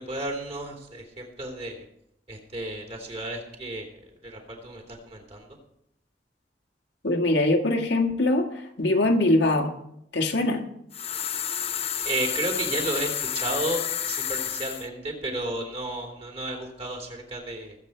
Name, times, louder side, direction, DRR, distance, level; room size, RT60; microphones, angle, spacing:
voice 1, 0.0-1.8 2.3-3.9 4.2-5.5 12.0-17.7, right 2 dB, 35° right, 1 dB, 3.2 m, -32 dB
voice 2, 7.0-8.5 8.8-9.7 10.1-10.6, left 2 dB, 85° left, 3 dB, 1.8 m, -22 dB
sound 1, 10.9-14.9, left 9 dB, 35° left, 0.7 m, -30 dB
21.0 x 8.1 x 4.5 m, 0.75 s
head